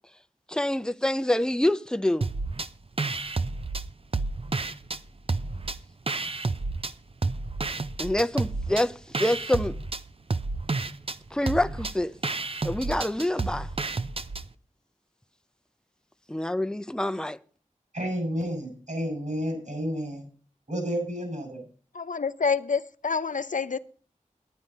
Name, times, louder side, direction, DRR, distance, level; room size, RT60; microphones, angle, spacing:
voice 1, 0.5-2.3 8.0-9.8 11.3-12.1 12.6-13.7 16.3-17.4, left 1 dB, 5° left, 0.6 m, -26 dB
sound 1, 2.2-2.7 3.0-5.0 5.3-6.9 7.2-14.5, right 3 dB, 45° right, 0.6 m, -30 dB
voice 2, 17.9-20.2 20.7-21.6, equal, 70° right, 6.3 m, -31 dB
voice 3, 21.9-23.8, left 5 dB, 70° left, 0.7 m, -27 dB
10.0 x 9.5 x 5.4 m
wide cardioid pair, 45°, 14 cm